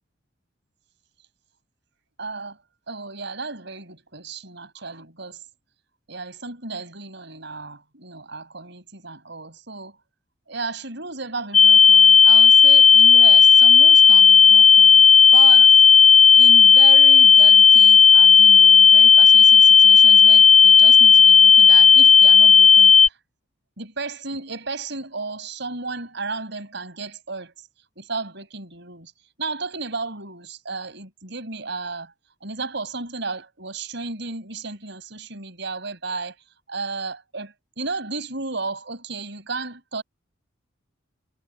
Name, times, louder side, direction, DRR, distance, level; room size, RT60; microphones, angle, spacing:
voice 1, 2.2-2.6 2.9-5.4 6.1-10.0 10.5-15.0 15.3-15.8 16.3-23.2 23.8-27.5 28.0-29.1 29.4-32.1 32.4-36.3 36.7-40.0, right 3 dB, 60° right, 6.6 m, -33 dB
sound 1, 11.5-23.1, left 6 dB, 35° left, 0.6 m, -11 dB
head